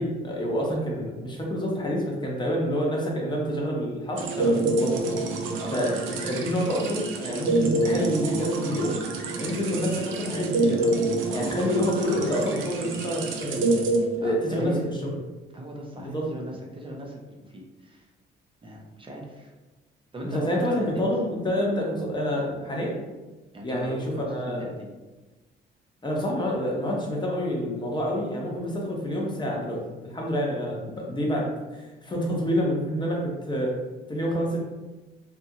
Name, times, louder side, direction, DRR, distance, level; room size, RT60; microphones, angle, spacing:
voice 1, 0.0-5.2 5.7-8.9 9.4-11.0 11.3-13.7 14.2-14.9 16.0-16.3 20.2-23.0 23.6-24.6 26.0-33.7 34.1-34.6, equal, 20° left, -2 dB, 0.8 m, -28 dB
sound 1, 4.2-14.7, right 2 dB, 80° right, 0.5 m, -27 dB
voice 2, 14.2-14.8 15.5-18.1 18.6-19.5 20.1-21.1 23.5-24.9, equal, 25° right, -1 dB, 0.6 m, -39 dB
2.7 x 2.5 x 2.7 m, 1.1 s
cardioid pair, 90°, 20 cm